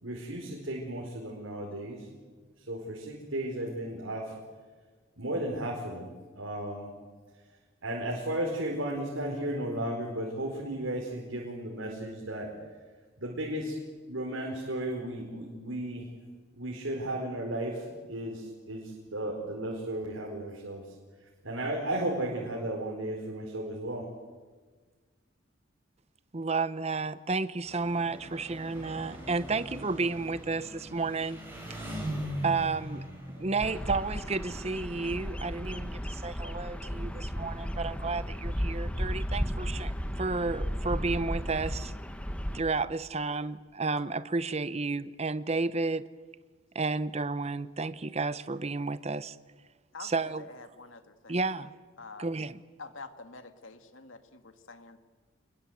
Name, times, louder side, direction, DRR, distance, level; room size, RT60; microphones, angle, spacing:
voice 1, 0.0-2.1 2.6-4.3 5.2-6.9 7.8-12.6 13.2-13.8 14.1-16.1 16.5-20.9 21.4-24.1, right 1 dB, 90° right, 4.6 m, -34 dB
voice 2, 26.3-31.4 32.4-41.9 42.5-46.1 46.7-49.4 50.0-50.4 51.3-51.7 52.2-52.6, right 3 dB, 35° right, 0.8 m, -32 dB
Engine, 27.6-34.2, equal, 10° right, 7.7 m, -40 dB
Bird vocalization bird call bird song, 33.6-42.6, equal, 5° left, 1.2 m, -34 dB
voice 3, 36.6-37.3 49.9-51.7 52.0-52.3 52.8-55.0, left 3 dB, 85° left, 2.1 m, -48 dB
27.5 x 21.5 x 8.1 m
head